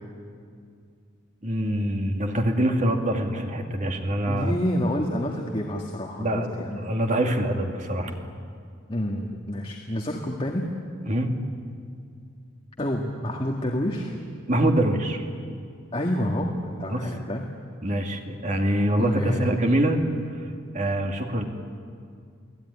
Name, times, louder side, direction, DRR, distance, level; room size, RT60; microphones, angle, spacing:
voice 1, 1.4-4.5 6.2-8.2 11.0-11.3 14.5-15.2 16.9-17.1 17.8-20.0 20.7-21.4, right 1 dB, 35° right, 3 dB, 2.5 m, -24 dB
voice 2, 4.3-6.9 8.9-10.7 12.8-14.1 15.9-17.4 19.0-19.5, equal, 25° left, 0 dB, 2.0 m, -28 dB
29.5 x 19.0 x 9.9 m, 2.2 s
head